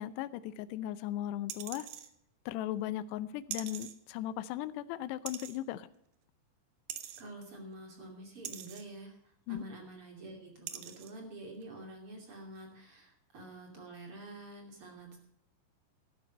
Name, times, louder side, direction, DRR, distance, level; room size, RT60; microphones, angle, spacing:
voice 1, 0.0-1.9 2.5-5.9 9.5-9.6, left 12 dB, 80° left, 13 dB, 2.6 m, -37 dB
sound 1, 1.5-2.1 3.5-3.9 5.3-5.6 6.9-7.2 8.4-8.8 9.9-10.0 10.7-11.1 11.6-11.7, right 11 dB, 70° right, 2.2 m, -42 dB
voice 2, 7.2-15.2, right 2 dB, 35° right, 2 dB, 2.9 m, -48 dB
12.5 x 12.0 x 5.3 m, 0.70 s
omnidirectional pair, 5.2 m